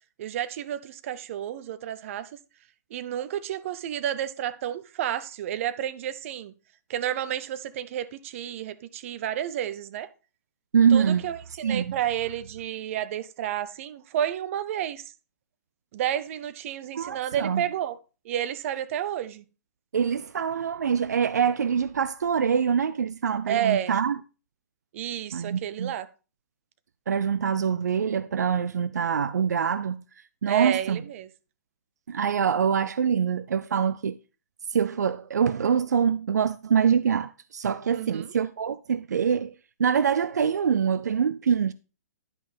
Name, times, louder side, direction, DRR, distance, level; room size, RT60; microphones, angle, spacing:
voice 1, 0.2-2.3 2.9-6.5 6.9-10.1 10.9-15.0 15.9-18.0 18.2-19.4 23.5-24.0 24.9-26.1 30.5-31.3 37.9-38.3, right 10 dB, 50° right, 0.7 m, -30 dB
voice 2, 10.7-11.2 11.6-12.0 16.9-17.6 19.9-24.2 25.3-25.9 27.1-30.0 30.4-31.0 32.1-34.1 34.7-39.5 39.8-41.7, right 7 dB, 80° right, 0.3 m, -24 dB
10.5 x 5.4 x 3.4 m
hypercardioid pair, 130°, 9 cm